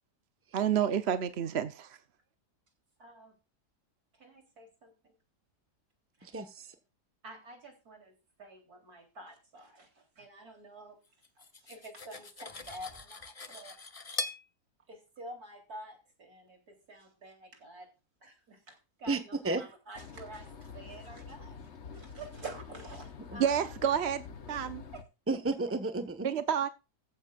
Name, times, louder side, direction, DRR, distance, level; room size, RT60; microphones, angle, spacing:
voice 1, 0.5-2.0 23.4-24.8 26.2-26.7, right 8 dB, 50° right, 0.9 m, -29 dB
voice 2, 3.0-3.3 4.1-5.2 6.2-6.4 7.2-11.0 11.4-13.8 14.9-17.9 18.2-23.6 24.5-25.0, right 2 dB, 65° right, 4.2 m, -49 dB
voice 3, 6.2-6.7 19.1-19.2 19.4-19.6 23.3-23.4 25.3-26.3, right 3 dB, 10° right, 1.2 m, -32 dB
Cutlery silverware, 11.2-14.4, left 3 dB, 25° left, 1.0 m, -41 dB
sound 1, 19.9-25.0, left 5 dB, 50° left, 1.2 m, -47 dB
15.0 x 12.0 x 2.5 m
omnidirectional pair, 1.7 m